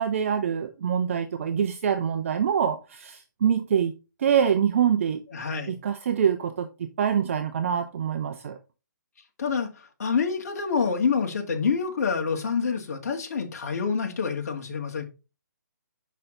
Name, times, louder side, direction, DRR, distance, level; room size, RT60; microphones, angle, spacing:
voice 1, 0.0-3.9 4.2-5.2 5.7-8.6, right 8 dB, 45° right, 0.7 m, -25 dB
voice 2, 5.3-5.8 9.4-9.7 10.0-15.0, left 5 dB, 55° left, 2.0 m, -27 dB
6.3 x 5.6 x 3.9 m
hypercardioid pair, 155°, 10 cm